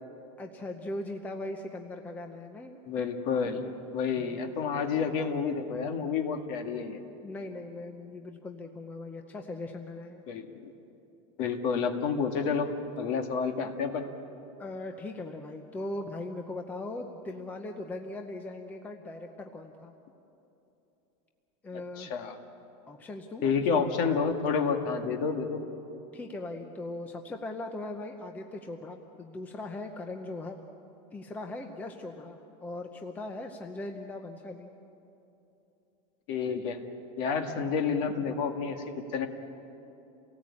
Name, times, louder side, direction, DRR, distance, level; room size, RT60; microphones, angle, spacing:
voice 1, 0.4-2.8 4.2-4.6 7.2-10.2 14.6-19.9 21.6-22.1 22.9-23.6 26.1-30.6 31.1-34.7, left 2 dB, 10° left, 4 dB, 0.7 m, -39 dB
voice 2, 2.9-7.0 10.3-10.5 11.4-12.7 13.0-14.1 22.0-22.4 23.4-25.6 36.3-36.8 37.2-39.3, left 5 dB, 45° left, 5 dB, 1.9 m, -29 dB
29.0 x 18.5 x 8.6 m, 3.0 s
supercardioid pair, 180°, 18 cm